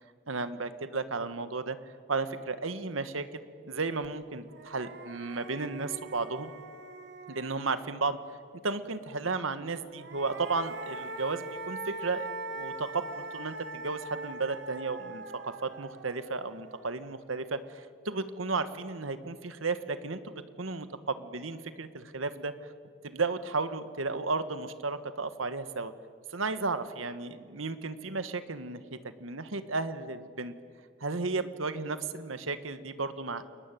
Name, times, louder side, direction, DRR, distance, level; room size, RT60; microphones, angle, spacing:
voice 1, 0.3-1.8 2.1-6.5 7.3-8.2 8.6-12.3 12.5-22.5 23.0-25.9 26.3-30.5 31.0-33.4, right 3 dB, 85° right, 12 dB, 1.4 m, -34 dB
sound 1, 4.0-4.1 4.5-8.2 9.8-17.1, right 2 dB, 60° right, 1.9 m, -42 dB
30.0 x 21.5 x 9.3 m, 2.3 s
head